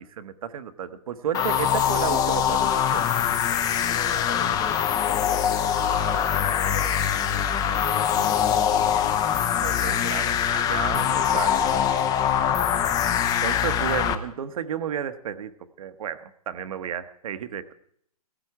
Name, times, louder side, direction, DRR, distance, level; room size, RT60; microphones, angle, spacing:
voice 1, 0.0-3.1 4.4-4.5 9.6-11.7 13.4-17.7, right 8 dB, 60° right, 11 dB, 1.1 m, -32 dB
sound 1, 1.3-14.2, left 9 dB, 20° left, 0.7 m, -23 dB
voice 2, 3.7-8.7, left 5 dB, 50° left, -4 dB, 3.8 m, -40 dB
16.5 x 15.0 x 4.8 m, 0.66 s
hypercardioid pair, 140°, 20 cm